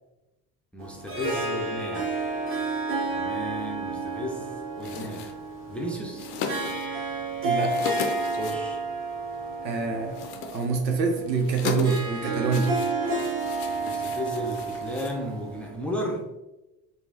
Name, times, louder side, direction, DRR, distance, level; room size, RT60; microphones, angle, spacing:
voice 1, 0.7-2.6 3.1-4.5 4.8-5.4 5.7-6.3 8.4-8.8 13.8-16.3, equal, 5° left, 0 dB, 0.5 m, -34 dB
Harp, 0.8-16.1, right 3 dB, 25° right, 0.9 m, -31 dB
sound 1, 4.8-15.7, left 6 dB, 65° left, 0.6 m, -38 dB
voice 2, 7.4-7.8 9.6-10.1 10.5-12.7, right 4 dB, 85° right, 4 dB, 0.6 m, -25 dB
3.7 x 2.4 x 2.7 m, 0.99 s
figure-of-eight pair, 60°, 49 cm